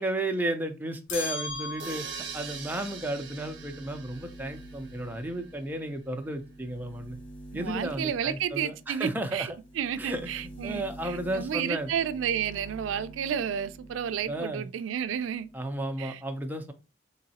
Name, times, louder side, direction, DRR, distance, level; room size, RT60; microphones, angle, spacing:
voice 1, 0.0-2.1 2.3-7.2 7.5-9.5 10.0-10.3 10.6-11.9 14.3-14.7 15.5-16.7, right 1 dB, 10° right, 0.4 m, -33 dB
sound 1, 1.1-2.5, left 3 dB, 65° left, 0.7 m, -36 dB
sound 2, 1.6-14.5 14.9-15.9, right 2 dB, 25° left, 1.7 m, -48 dB
sound 3, 1.8-5.5, right 6 dB, 65° right, 0.8 m, -43 dB
voice 2, 7.5-9.5 9.8-15.5 16.0-16.2, right 8 dB, 90° right, 0.3 m, -31 dB
3.8 x 3.0 x 2.8 m
head